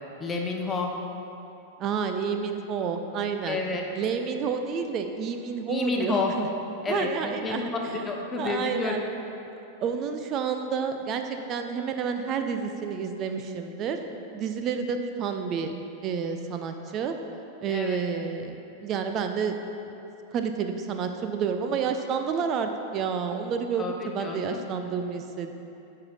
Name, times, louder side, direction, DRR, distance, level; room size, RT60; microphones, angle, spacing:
voice 1, 0.2-0.9 3.5-3.8 5.7-6.3 6.8-9.0 17.7-18.0 23.8-23.9 24.2-24.6, left 3 dB, 20° left, 1 dB, 1.0 m, -30 dB
voice 2, 1.8-3.6 3.9-6.5 6.9-8.0 8.4-9.0 9.8-14.0 14.3-17.1 17.6-19.6 20.3-25.5, right 6 dB, 35° right, 6 dB, 0.5 m, -30 dB
9.6 x 4.7 x 5.4 m, 2.8 s
figure-of-eight pair, 90°, 0 cm